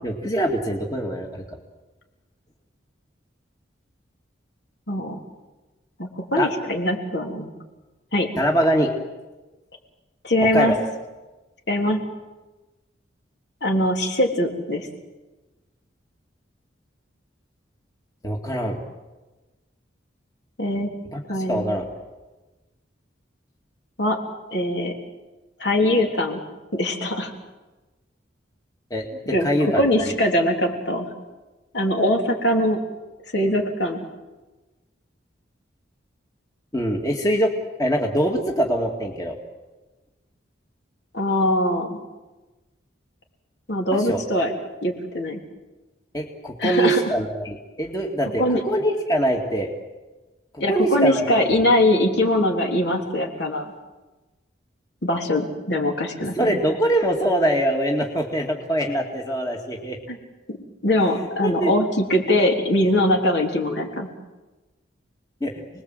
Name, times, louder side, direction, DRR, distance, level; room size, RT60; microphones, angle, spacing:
voice 1, 0.0-1.6 6.4-6.5 8.4-8.9 10.5-10.8 18.2-18.8 21.1-21.2 21.5-21.9 28.9-30.2 36.7-37.5 37.8-39.4 43.9-44.2 46.1-49.7 50.7-51.3 56.4-60.0 61.4-61.7 65.4-65.6, right 1 dB, 20° left, 1 dB, 2.2 m, -23 dB
voice 2, 4.9-5.2 6.0-7.5 8.1-8.3 10.2-10.7 11.7-12.0 13.6-14.9 20.6-20.9 21.3-21.6 24.0-24.2 24.5-24.9 25.6-26.4 26.7-27.3 29.3-29.5 29.8-31.1 31.7-32.8 33.3-34.0 41.1-42.0 43.7-44.5 44.8-45.4 46.6-47.0 48.4-48.6 50.6-53.7 55.0-56.6 60.1-60.2 60.5-60.6 60.8-64.1, left 1 dB, 60° left, 1 dB, 3.5 m, -22 dB
29.5 x 20.5 x 7.9 m, 1.2 s
head